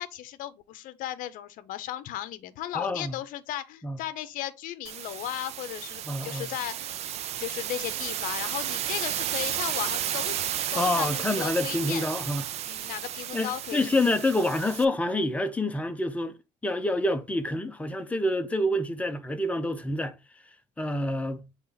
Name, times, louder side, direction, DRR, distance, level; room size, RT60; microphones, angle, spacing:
voice 1, 0.0-6.9 7.4-12.1 12.7-13.8, left 13 dB, 60° left, 0.7 m, -36 dB
voice 2, 2.7-3.1 3.8-4.0 6.1-6.5 10.8-12.5 13.3-16.3 16.6-20.2 20.8-21.5, left 1 dB, 10° left, 0.7 m, -27 dB
sound 1, 4.9-14.9, right 11 dB, 45° right, 0.4 m, -33 dB
7.1 x 3.5 x 3.9 m
cardioid pair, 140°, 16 cm